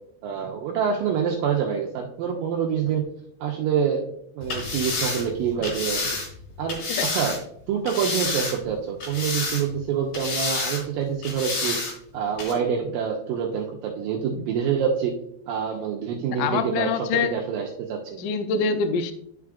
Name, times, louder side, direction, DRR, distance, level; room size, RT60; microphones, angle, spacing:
voice 1, 0.2-3.1 3.4-6.2 6.6-6.8 7.1-7.4 7.7-11.8 12.1-15.1 15.5-18.3, right 7 dB, 80° right, 0 dB, 2.2 m, -26 dB
sound 1, 4.4-7.4 7.9-8.7 9.0-9.8 10.1-10.8 11.2-11.9 12.4-12.5, left 3 dB, 60° left, 2.6 m, -29 dB
voice 2, 16.4-17.3 18.2-19.1, left 5 dB, 90° left, 8 dB, 1.8 m, -25 dB
10.5 x 4.7 x 2.4 m, 0.67 s
omnidirectional pair, 4.4 m